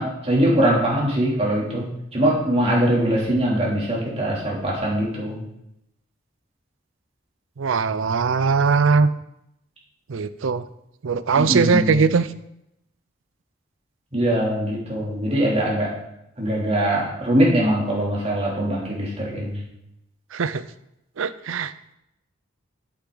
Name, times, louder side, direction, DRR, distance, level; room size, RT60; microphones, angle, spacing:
voice 1, 0.0-5.4 11.4-12.0 14.1-15.9 16.4-19.6, right 1 dB, 30° right, -4 dB, 3.0 m, -22 dB
voice 2, 7.6-9.1 10.1-10.6 11.0-12.3 20.3-20.6 21.2-21.7, right 5 dB, 85° right, 14 dB, 0.5 m, -20 dB
8.5 x 8.2 x 3.9 m, 0.82 s
head